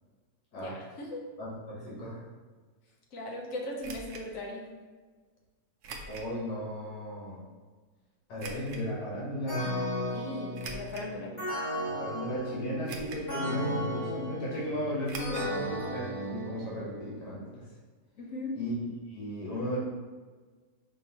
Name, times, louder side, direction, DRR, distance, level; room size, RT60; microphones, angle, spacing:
voice 1, 0.6-1.3 3.1-4.7 10.1-11.4 18.2-18.6, left 1 dB, 65° left, -1 dB, 1.0 m, -38 dB
voice 2, 1.4-2.2 6.1-7.4 8.3-9.7 11.9-17.6 18.6-18.7 19.1-19.8, equal, 85° left, -7 dB, 1.7 m, -35 dB
sound 1, 3.8-4.3 5.8-6.3 6.9-7.0 8.4-8.8 10.5-11.1 11.8-11.9 12.9-13.4 13.6-13.7 15.1-15.5 15.8-15.9 16.2-16.3, right 3 dB, 70° right, 0.8 m, -42 dB
sound 2, 9.5-17.1, equal, 30° left, 1.2 m, -35 dB
5.2 x 2.9 x 2.8 m, 1.4 s
omnidirectional pair, 1.6 m